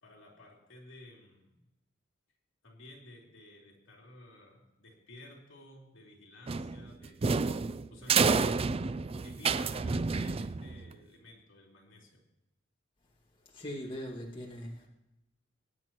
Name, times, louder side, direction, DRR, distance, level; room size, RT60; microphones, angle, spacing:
voice 1, 0.0-1.6 2.6-7.2 7.9-8.7 9.2-12.2, left 1 dB, 70° left, -2 dB, 3.0 m, -53 dB
sound 1, 6.5-10.9, right 5 dB, 30° right, 0.4 m, -29 dB
voice 2, 13.5-14.9, equal, 25° left, -3 dB, 2.2 m, -40 dB
25.0 x 10.0 x 3.0 m, 0.92 s
head